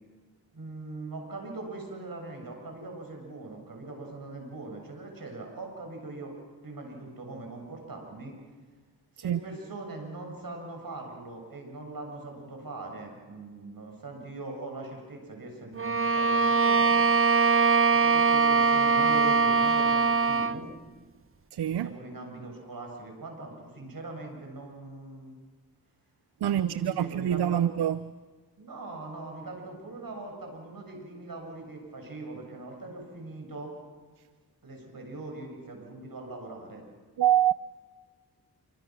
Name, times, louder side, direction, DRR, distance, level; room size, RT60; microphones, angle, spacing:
voice 1, 0.5-6.3 6.6-8.4 9.1-17.1 17.9-20.7 21.8-25.4 26.4-27.6 28.6-33.7 34.6-36.8, right 2 dB, 60° right, 7.5 m, -41 dB
Bowed string instrument, 15.8-20.6, right 4 dB, 35° right, 0.9 m, -22 dB
voice 2, 21.5-22.0 26.4-28.1 37.2-37.5, right 11 dB, 80° right, 0.6 m, -25 dB
28.0 x 24.5 x 6.2 m
cardioid pair, 50°, 38 cm